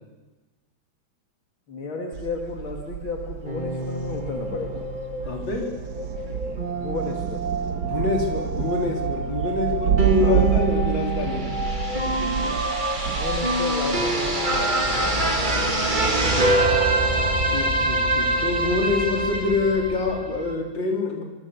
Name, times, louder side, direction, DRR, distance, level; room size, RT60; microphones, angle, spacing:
voice 1, 1.7-4.8 6.7-7.4 10.2-10.4 13.2-15.1, left 3 dB, 85° left, 1 dB, 3.0 m, -32 dB
Thunder, 2.1-20.2, right 8 dB, 60° right, 1.4 m, -30 dB
sound 1, 3.4-20.5, right 2 dB, 25° right, 2.5 m, -25 dB
voice 2, 5.2-5.7 7.8-11.5 15.4-15.7 17.4-21.2, left 3 dB, 65° left, 1 dB, 4.6 m, -26 dB
26.5 x 24.0 x 7.0 m, 1.2 s
omnidirectional pair, 2.2 m